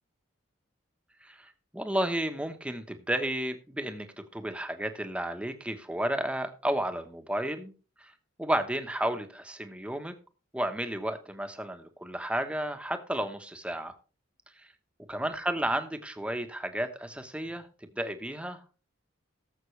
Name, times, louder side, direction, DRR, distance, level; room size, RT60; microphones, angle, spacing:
voice 1, 1.2-4.1 4.3-7.7 8.0-8.1 8.4-10.1 10.5-13.9 15.1-18.7, right 1 dB, 5° right, 7 dB, 1.1 m, -32 dB
17.5 x 7.5 x 3.3 m, 0.35 s
head